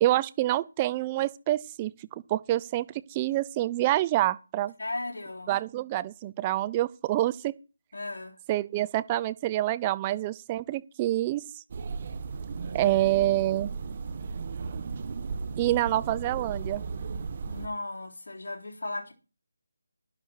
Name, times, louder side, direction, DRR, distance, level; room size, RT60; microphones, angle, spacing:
voice 1, 0.0-1.9 2.3-4.7 5.5-7.5 8.5-11.4 12.7-13.7 15.6-16.8, right 15 dB, 20° right, 0.6 m, -27 dB
voice 2, 4.8-5.5 7.9-8.4 17.4-19.1, left 2 dB, 60° left, 3.8 m, -36 dB
sound 1, 11.7-17.7, right 4 dB, 40° right, 1.2 m, -35 dB
11.5 x 11.0 x 4.5 m
figure-of-eight pair, 160°, 0 cm